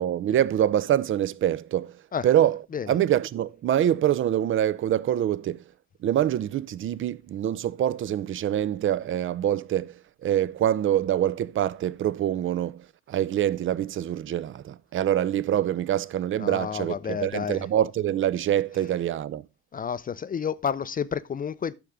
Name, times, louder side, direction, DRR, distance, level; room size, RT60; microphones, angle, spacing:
voice 1, 0.0-2.0 2.2-2.6 2.9-5.6 6.0-9.9 10.2-19.4, right 11 dB, 35° right, 0.7 m, -25 dB
voice 2, 16.4-17.7 19.7-21.7, left 7 dB, 25° left, 0.6 m, -30 dB
13.0 x 6.6 x 3.7 m
figure-of-eight pair, 50°, 34 cm